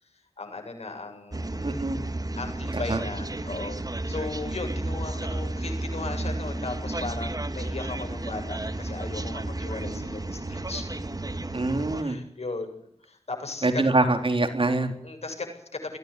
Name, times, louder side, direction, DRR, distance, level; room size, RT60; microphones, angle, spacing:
voice 1, 0.1-1.8 2.4-10.8 11.9-13.8 15.0-16.0, left 3 dB, 85° left, 4 dB, 7.6 m, -37 dB
sound 1, 1.3-12.0, right 2 dB, 35° right, 2.0 m, -32 dB
voice 2, 1.6-2.0 2.9-3.0 11.5-12.2 13.6-14.9, right 2 dB, 55° right, 6 dB, 3.8 m, -24 dB
22.0 x 17.0 x 10.0 m, 0.70 s
wide cardioid pair, 75°, 11 cm